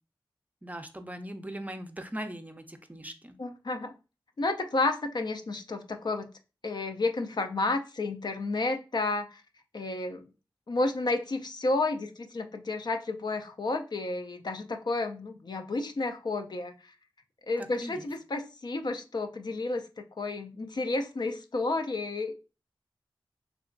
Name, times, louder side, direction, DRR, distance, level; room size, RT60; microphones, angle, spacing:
voice 1, 0.6-3.4 17.6-18.1, right 1 dB, 15° right, 6 dB, 0.5 m, -40 dB
voice 2, 3.4-3.9 4.4-6.3 6.6-9.4 9.7-10.2 10.7-16.9 17.5-22.5, left 2 dB, 55° left, 5 dB, 0.5 m, -31 dB
3.4 x 2.8 x 2.5 m, 0.31 s
cardioid pair, 50°, 9 cm